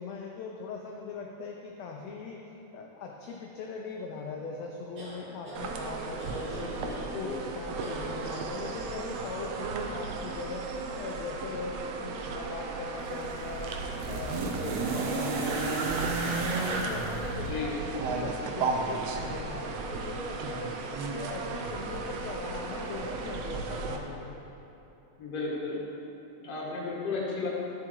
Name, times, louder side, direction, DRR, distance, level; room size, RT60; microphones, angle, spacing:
voice 1, 0.0-2.4 2.7-10.6 11.0-24.4, left 3 dB, 75° left, 0 dB, 1.5 m, -40 dB
sound 1, 5.0-5.6 6.2-7.1 7.8-8.4, right 1 dB, 50° right, 3.4 m, -43 dB
sound 2, 5.6-24.0, right 4 dB, 85° right, 1.4 m, -36 dB
sound 3, 13.0-18.2 19.3-19.4, right 3 dB, 70° right, 2.0 m, -32 dB
voice 2, 25.2-25.8 26.4-27.5, left 3 dB, 55° left, -5 dB, 2.6 m, -34 dB
12.5 x 7.4 x 4.6 m, 2.9 s
omnidirectional pair, 3.8 m